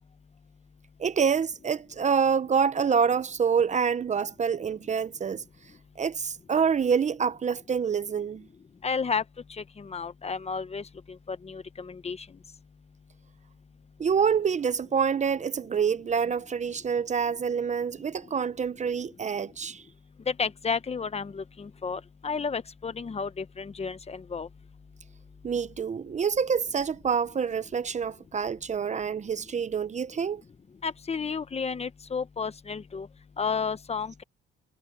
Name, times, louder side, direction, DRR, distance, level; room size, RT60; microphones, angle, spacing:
voice 1, 1.0-5.4 6.0-8.5 14.0-19.8 25.4-30.4, right 6 dB, 35° right, 0.7 m, -27 dB
voice 2, 8.8-9.2 9.6-10.8 11.3-12.3 20.3-24.5 30.8-33.1 33.4-34.2, left 5 dB, 30° left, 1.1 m, -32 dB
cardioid pair, 90°, 20 cm